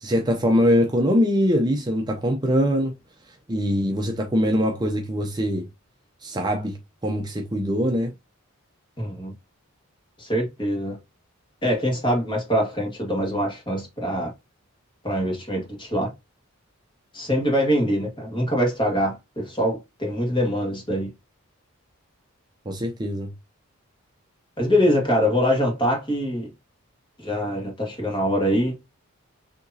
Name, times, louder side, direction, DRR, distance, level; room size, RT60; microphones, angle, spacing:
voice 1, 0.0-2.9 3.5-5.7 6.2-6.8 7.0-8.1 22.7-23.3, equal, 20° right, 0.5 m, -22 dB
voice 2, 9.0-9.3 10.2-11.0 11.6-14.3 15.0-16.1 17.1-21.1 24.6-26.5 27.2-28.7, equal, 20° left, 1.6 m, -24 dB
6.4 x 2.9 x 2.7 m
head